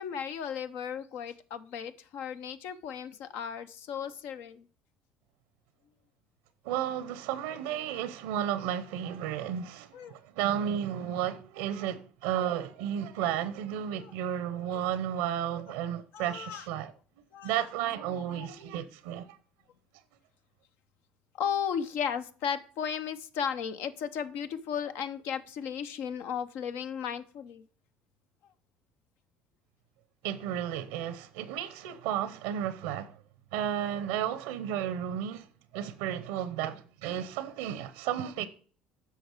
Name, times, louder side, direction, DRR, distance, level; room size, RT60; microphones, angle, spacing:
voice 1, 0.0-4.7 9.9-10.2 13.9-14.1 14.7-14.9 16.1-16.7 17.3-17.5 18.3-18.5 21.4-27.6, left 8 dB, 70° left, 0.8 m, -35 dB
voice 2, 6.6-16.9 17.4-19.4 30.2-33.2 33.5-35.5 35.7-38.5, right 10 dB, 80° right, 0.7 m, -33 dB
8.3 x 5.7 x 4.5 m
hypercardioid pair, 70°, 4 cm